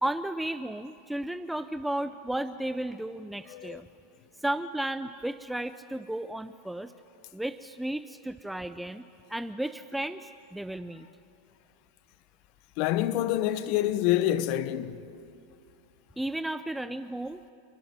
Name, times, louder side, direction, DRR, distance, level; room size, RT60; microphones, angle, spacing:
voice 1, 0.0-3.9 4.4-6.9 7.3-9.0 9.3-11.1 16.2-17.4, right 1 dB, 5° right, 0.6 m, -33 dB
voice 2, 12.8-15.0, left 13 dB, 55° left, 1.0 m, -27 dB
29.5 x 12.0 x 10.0 m
hypercardioid pair, 95°, 0 cm